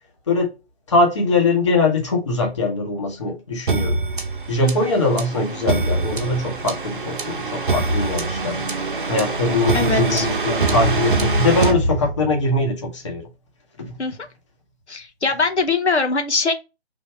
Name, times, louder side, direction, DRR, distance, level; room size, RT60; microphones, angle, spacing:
voice 1, 0.9-4.0 4.5-8.6 9.1-13.2 13.8-14.0, left 2 dB, 25° left, 0.9 m, -21 dB
sound 1, 3.7-12.5, right 3 dB, 50° right, 0.8 m, -23 dB
voice 2, 9.7-10.3 14.0-14.2 14.9-16.5, left 3 dB, 90° left, 0.8 m, -21 dB
3.3 x 2.7 x 4.4 m
figure-of-eight pair, 150°, 33 cm